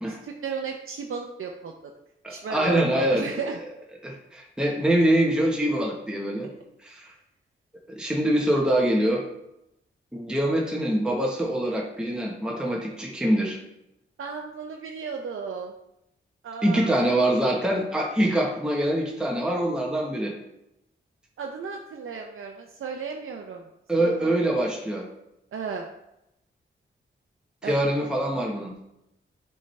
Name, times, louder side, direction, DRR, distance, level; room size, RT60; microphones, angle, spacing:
voice 1, 0.1-1.7 2.3-3.6 14.2-15.7 16.4-17.1 21.4-23.7 24.0-24.3 25.5-25.9 27.6-27.8, right 5 dB, 80° right, 2 dB, 0.6 m, -34 dB
voice 2, 2.2-3.3 4.0-6.5 6.8-7.1 8.0-9.2 10.1-13.6 16.6-20.3 23.9-25.0 27.6-28.7, right 1 dB, 5° right, -2 dB, 1.0 m, -24 dB
7.5 x 4.4 x 3.2 m, 0.85 s
wide cardioid pair, 80°, 21 cm